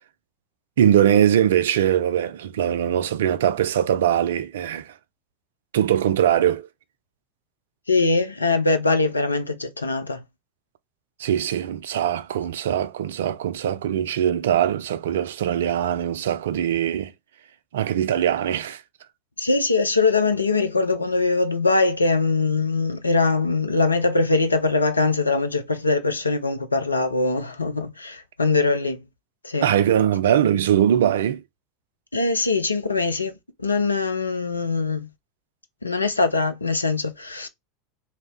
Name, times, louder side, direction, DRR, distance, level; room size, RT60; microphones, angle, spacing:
voice 1, 0.8-4.9 5.7-6.7 11.2-17.1 17.7-18.8 29.6-31.4, right 10 dB, 65° right, 0.3 m, -21 dB
voice 2, 7.9-10.2 19.4-29.1 29.4-29.7 32.1-35.1 35.8-37.5, left 3 dB, 85° left, 0.5 m, -22 dB
2.9 x 2.7 x 3.2 m
figure-of-eight pair, 80°, 0 cm